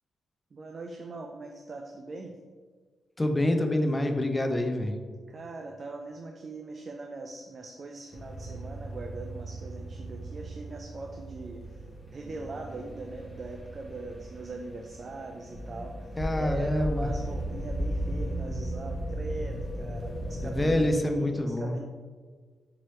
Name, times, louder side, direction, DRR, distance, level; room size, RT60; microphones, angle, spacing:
voice 1, 0.5-2.4 5.3-21.8, right 3 dB, 45° right, 3 dB, 0.3 m, -40 dB
voice 2, 3.2-4.9 16.2-17.1 20.4-21.8, left 1 dB, 20° left, 5 dB, 0.4 m, -27 dB
sound 1, 8.1-20.9, right 1 dB, 5° left, 1.0 m, -36 dB
4.6 x 2.9 x 3.1 m, 1.5 s
cardioid pair, 90°, 0 cm